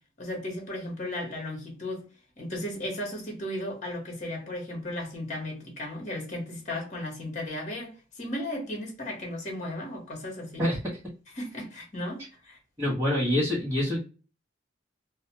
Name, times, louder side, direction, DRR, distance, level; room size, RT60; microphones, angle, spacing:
voice 1, 0.2-2.0 2.4-10.7 11.4-12.6, left 1 dB, 40° left, 1.1 m, -35 dB
voice 2, 12.8-14.0, left 1 dB, 15° right, 0.9 m, -25 dB
2.3 x 2.2 x 2.8 m
head